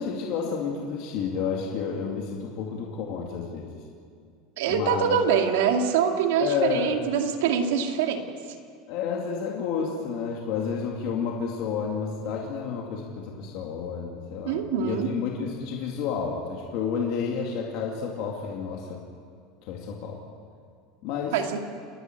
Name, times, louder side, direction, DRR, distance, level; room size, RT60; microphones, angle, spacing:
voice 1, 0.0-3.8 4.7-5.1 6.4-6.9 8.9-19.0 19.6-20.2 21.0-21.6, left 6 dB, 50° left, -1 dB, 2.4 m, -30 dB
voice 2, 4.6-8.3 14.5-15.1 21.3-21.6, right 7 dB, 85° right, 4 dB, 2.3 m, -24 dB
29.0 x 11.0 x 9.5 m, 2.2 s
supercardioid pair, 180°, 0 cm